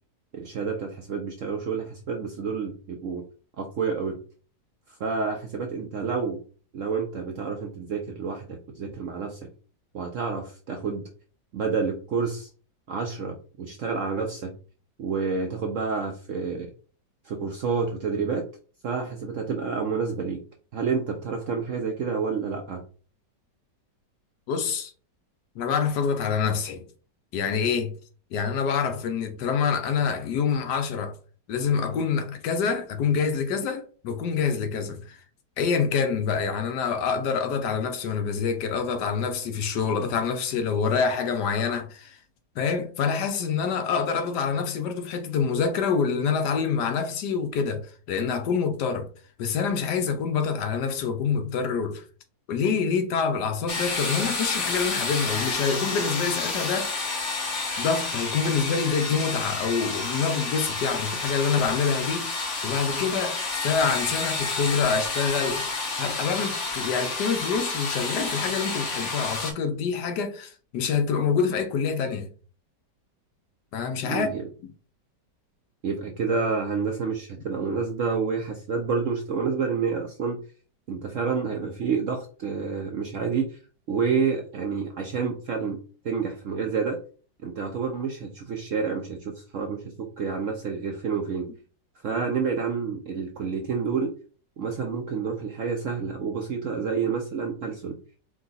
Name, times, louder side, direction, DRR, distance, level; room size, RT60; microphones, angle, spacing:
voice 1, 0.3-3.2 3.6-4.2 5.0-6.4 6.7-9.4 9.9-11.1 11.5-12.5 12.9-14.5 15.0-16.7 17.2-18.4 18.8-20.4 20.7-22.8 74.0-74.5 75.8-80.4 80.9-83.6 83.9-85.8 86.0-87.0 87.4-91.5 92.0-94.1 94.6-98.0, right 5 dB, 65° right, 0.7 m, -29 dB
voice 2, 24.5-24.9 25.6-26.9 27.3-28.0 28.3-31.1 31.5-35.2 35.6-42.2 42.6-49.1 49.4-52.0 52.5-56.9 57.8-65.6 66.0-72.3 73.7-74.3, left 6 dB, 70° left, 1.3 m, -26 dB
sound 1, 53.7-69.5, left 3 dB, 50° left, 1.2 m, -30 dB
4.8 x 2.3 x 4.0 m
omnidirectional pair, 1.9 m